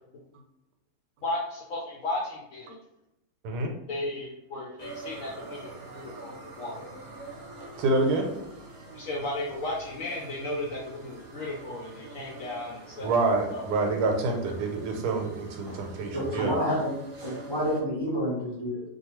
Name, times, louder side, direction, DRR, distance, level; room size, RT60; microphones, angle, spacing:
voice 1, 1.2-2.8 3.9-5.6 5.9-6.8 8.9-13.1 13.5-13.6, left 2 dB, 70° left, -3 dB, 0.8 m, -34 dB
sound 1, 4.8-17.8, right 2 dB, 65° right, 0.8 m, -45 dB
voice 2, 7.8-8.3 13.0-16.5, right 3 dB, 85° right, 3 dB, 1.2 m, -27 dB
voice 3, 16.1-16.9 17.2-18.8, equal, 30° left, -7 dB, 0.5 m, -29 dB
2.6 x 2.4 x 2.9 m, 0.84 s
omnidirectional pair, 1.7 m